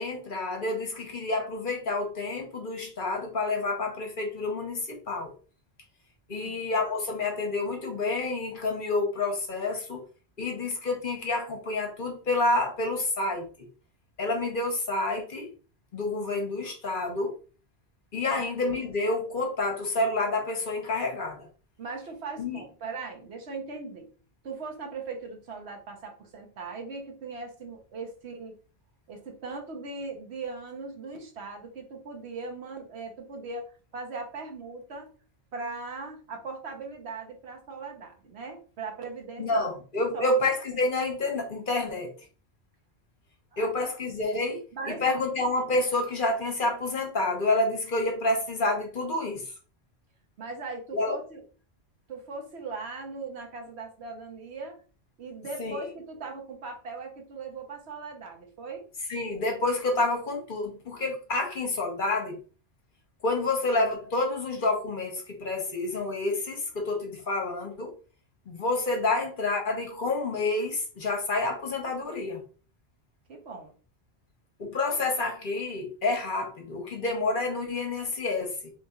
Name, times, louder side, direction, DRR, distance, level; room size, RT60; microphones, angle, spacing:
voice 1, 0.0-5.3 6.3-10.0 10.4-13.5 14.2-15.5 15.9-17.3 18.1-21.5 22.4-22.6 39.4-42.1 43.6-49.4 50.9-51.2 55.6-55.8 59.1-62.4 63.2-67.9 68.5-72.4 74.6-78.7, left 2 dB, 50° left, 0.9 m, -29 dB
voice 2, 21.8-24.1 24.4-28.5 29.1-35.1 35.5-39.6 40.1-40.2 43.5-43.7 44.7-45.1 50.4-51.4 52.1-54.8 55.2-58.9 73.3-73.7, right 4 dB, 70° right, 1.1 m, -39 dB
4.0 x 2.9 x 2.4 m
omnidirectional pair, 1.1 m